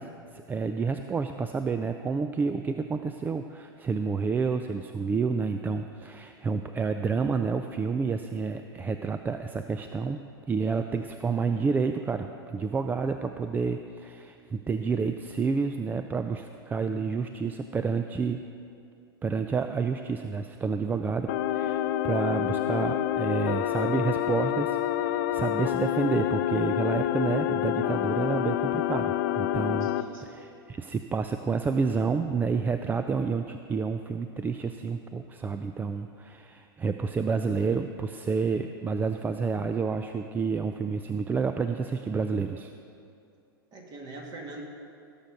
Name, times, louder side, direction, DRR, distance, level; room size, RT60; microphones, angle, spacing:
voice 1, 0.0-10.2 10.5-18.4 19.2-29.9 30.2-42.7, right 5 dB, 15° right, 8 dB, 0.4 m, -29 dB
sound 1, 21.3-30.0, left 12 dB, 55° left, 0.6 m, -27 dB
voice 2, 29.8-30.2 43.7-44.6, right 3 dB, 35° right, 0 dB, 2.3 m, -43 dB
17.0 x 6.9 x 5.1 m, 2.5 s
hypercardioid pair, 100°, 13 cm